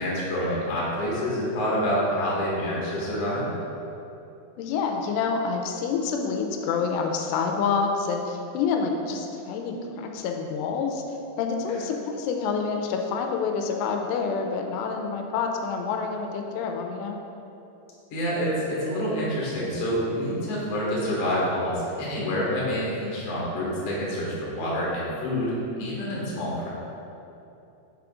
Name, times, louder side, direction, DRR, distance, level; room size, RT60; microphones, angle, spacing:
voice 1, 0.0-3.5 11.7-11.8 18.1-26.7, equal, 60° left, -6 dB, 1.6 m, -27 dB
voice 2, 4.6-11.0 11.4-17.2, left 5 dB, 85° left, 3 dB, 2.7 m, -27 dB
6.4 x 4.9 x 3.6 m, 2.9 s
omnidirectional pair, 4.9 m